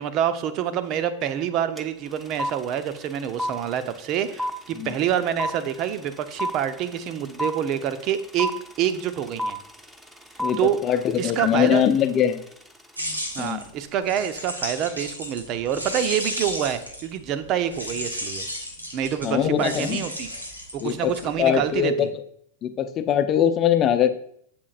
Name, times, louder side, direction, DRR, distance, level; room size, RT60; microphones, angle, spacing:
voice 1, 0.0-8.5 8.8-9.6 10.6-11.9 13.3-18.4 18.9-20.3 20.7-22.1, right 9 dB, 35° right, 11 dB, 0.9 m, -27 dB
sound 1, 1.8-1.9 2.1-13.2, equal, 5° right, 1.0 m, -32 dB
voice 2, 10.4-12.4 13.4-13.6 19.2-20.0 20.8-21.1 21.4-22.1 22.6-24.1, left 9 dB, 30° left, 10 dB, 0.8 m, -22 dB
sound 2, 12.9-17.2 17.7-21.7, equal, 80° right, 2.9 m, -33 dB
12.5 x 7.9 x 2.6 m, 0.67 s
figure-of-eight pair, 90°, 0 cm